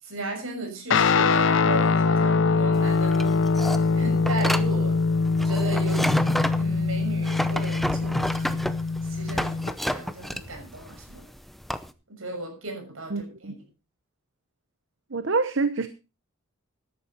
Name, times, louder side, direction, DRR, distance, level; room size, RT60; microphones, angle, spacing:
voice 1, 0.0-3.5 3.7-5.0 5.4-6.2 6.5-8.5 9.0-11.2 12.1-13.6, right 2 dB, 75° right, 6.5 m, -35 dB
Guitar, 0.9-9.7, left 4 dB, 60° left, 0.6 m, -23 dB
sound 1, 2.7-11.9, equal, ahead, 0.6 m, -30 dB
voice 2, 13.1-13.5 15.1-15.9, right 4 dB, 60° right, 0.8 m, -26 dB
13.5 x 11.0 x 4.4 m
head